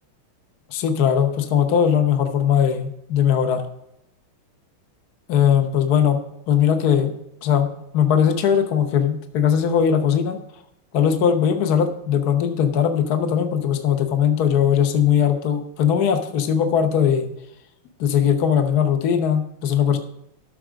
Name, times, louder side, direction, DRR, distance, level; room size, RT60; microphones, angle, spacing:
voice 1, 0.7-3.6 5.3-6.2 6.5-7.1 7.4-10.4 10.9-17.3 18.0-20.0, left 8 dB, 55° left, 6 dB, 1.3 m, -19 dB
13.0 x 6.5 x 5.0 m, 0.80 s
omnidirectional pair, 2.3 m